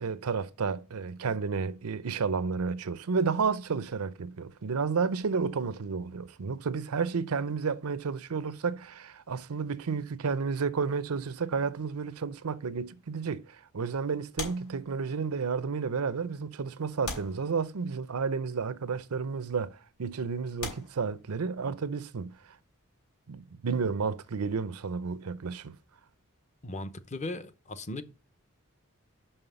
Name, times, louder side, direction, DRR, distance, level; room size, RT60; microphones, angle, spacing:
voice 1, 0.0-22.4 23.3-25.8, right 5 dB, 90° right, 0.6 m, -31 dB
sound 1, 14.3-15.4 16.2-16.3 17.0-18.1 19.1-19.3 19.9-20.0 20.6-21.8 23.7-25.5 25.8-26.0, left 3 dB, 85° left, 3.6 m, -42 dB
voice 2, 26.6-28.0, left 2 dB, 35° left, 0.7 m, -37 dB
5.6 x 5.6 x 6.8 m
head